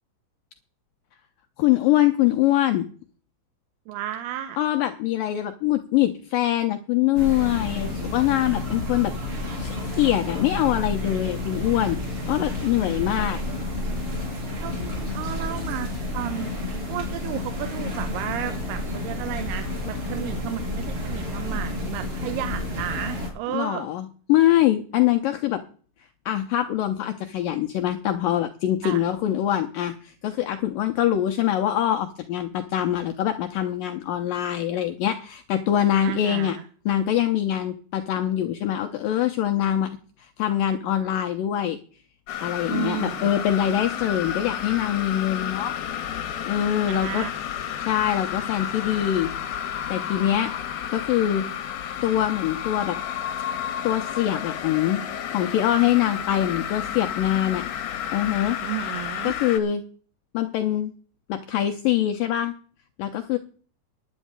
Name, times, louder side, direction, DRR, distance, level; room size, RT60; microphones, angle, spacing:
voice 1, 1.6-2.9 4.6-9.3 9.6-12.0 12.3-13.4 23.5-25.6 26.3-36.6 36.9-39.9 40.2-41.8 42.4-45.8 46.5-47.2 47.8-49.3 49.9-50.5 50.9-51.4 52.0-53.0 53.8-55.0 55.3-57.6 58.1-58.6 59.2-59.8 60.3-60.9 61.3-62.5 63.0-63.4, left 12 dB, 90° left, 6 dB, 1.9 m, -23 dB
voice 2, 3.9-4.6 14.5-16.5 16.9-23.9 28.8-29.0 36.0-36.6 42.6-43.3 46.9-47.3 58.6-59.4, right 12 dB, 75° right, 10 dB, 2.6 m, -33 dB
sound 1, 7.1-23.3, left 2 dB, 30° right, 6.0 m, -30 dB
sound 2, 42.3-59.6, left 9 dB, 65° left, 2.1 m, -31 dB
11.0 x 6.3 x 8.8 m, 0.42 s
omnidirectional pair, 4.9 m